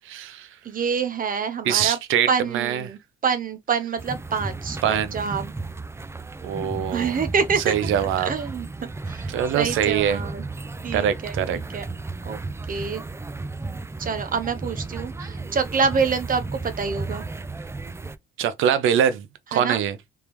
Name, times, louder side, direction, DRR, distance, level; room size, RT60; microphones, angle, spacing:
voice 1, 0.0-0.5 1.6-2.3 2.5-2.9 4.8-5.3 6.4-7.2 7.7-8.3 9.3-10.2 10.9-11.6 18.4-20.0, right 9 dB, 85° right, 0.7 m, -23 dB
voice 2, 0.6-2.0 2.3-5.5 6.6-7.7 8.2-10.4 10.8-11.4 11.7-11.8 12.2-12.4 12.7-13.0 14.0-17.3 19.5-19.8, right 6 dB, 45° right, 0.7 m, -27 dB
sound 1, 4.0-18.2, right 3 dB, 15° right, 0.3 m, -34 dB
3.4 x 3.3 x 3.0 m
cardioid pair, 90°, 20 cm